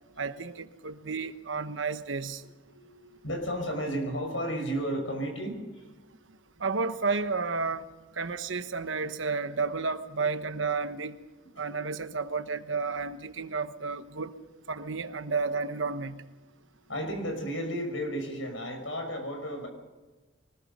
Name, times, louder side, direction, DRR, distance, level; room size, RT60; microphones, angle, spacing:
voice 1, 0.2-2.4 6.6-7.9 8.2-11.2 11.6-14.3 14.7-16.2, right 4 dB, 80° right, 1.1 m, -31 dB
voice 2, 2.6-5.9 11.6-11.7 16.8-19.7, equal, 85° left, 6.1 m, -33 dB
23.5 x 20.0 x 5.5 m
head